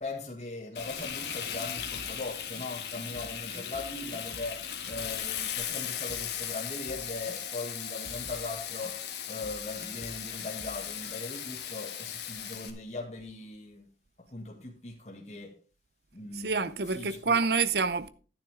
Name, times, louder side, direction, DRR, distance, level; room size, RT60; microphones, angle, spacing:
voice 1, 0.0-9.0 9.3-13.9 14.2-15.5 16.1-17.4, left 2 dB, 40° left, 1.8 m, -40 dB
Frying (food), 0.7-12.7, left 9 dB, 80° left, 1.6 m, -37 dB
sound 1, 0.8-12.0, right 1 dB, 55° right, 3.1 m, -51 dB
voice 2, 16.3-18.1, right 4 dB, 70° right, 0.7 m, -27 dB
11.0 x 9.8 x 3.5 m
head